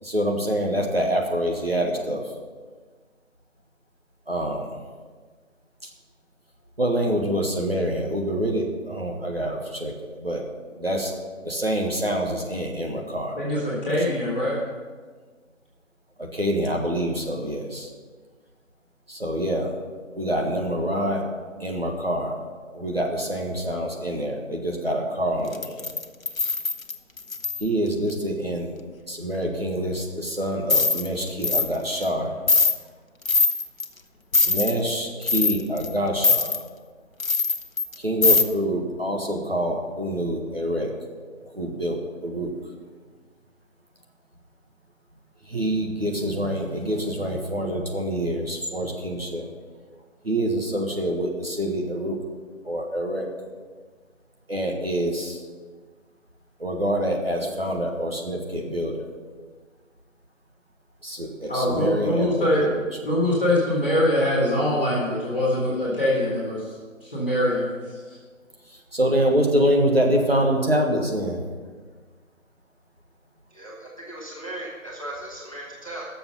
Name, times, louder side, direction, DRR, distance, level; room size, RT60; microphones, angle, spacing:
voice 1, 0.0-2.2 4.3-4.7 5.8-5.9 6.8-9.9 10.2-10.4 10.8-11.1 11.4-13.4 16.2-17.9 19.1-19.7 20.1-21.2 21.6-22.3 22.7-25.9 27.6-28.7 29.1-32.3 34.4-36.5 38.0-40.9 41.5-42.5 45.5-49.5 50.2-52.2 52.6-53.3 54.5-55.4 56.6-59.1 61.0-62.8 68.9-71.4, right 1 dB, 45° right, 0 dB, 1.6 m, -26 dB
voice 2, 13.4-14.5 61.5-62.7 63.0-66.6 67.0-67.7, left 1 dB, 10° left, -15 dB, 2.5 m, -23 dB
sound 1, 25.5-27.6 30.7-31.1 31.4-31.7 32.0-32.1 32.5-32.8 33.3-33.9 34.3-34.8 35.2-35.9 36.2-36.6 37.2-37.9 38.2-38.4, left 4 dB, 80° left, 1.1 m, -21 dB
voice 3, 73.5-76.0, right 1 dB, 25° left, -4 dB, 1.4 m, -37 dB
17.0 x 7.0 x 5.5 m, 1.5 s
figure-of-eight pair, 175°, 40 cm